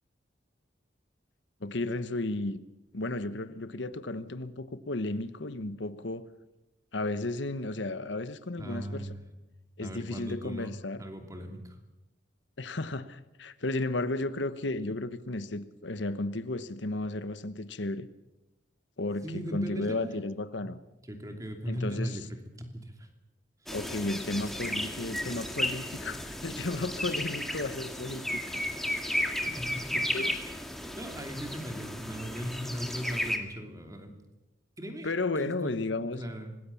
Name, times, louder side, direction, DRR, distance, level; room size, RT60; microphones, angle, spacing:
voice 1, 1.6-2.6 2.9-6.3 6.9-9.1 9.8-11.0 12.6-18.1 19.0-20.8 21.7-22.3 23.7-28.9 30.1-30.3 35.0-36.2, left 2 dB, 75° left, 1.2 m, -34 dB
voice 2, 8.6-9.3 9.8-11.8 19.2-20.1 20.6-20.7 21.1-23.1 23.6-23.7 29.4-30.0 30.4-34.1 34.8-35.1 35.4-35.8 36.2-36.5, equal, 20° right, 2.8 m, -39 dB
sound 1, 23.7-33.4, left 1 dB, ahead, 2.1 m, -34 dB
25.5 x 19.5 x 7.2 m
head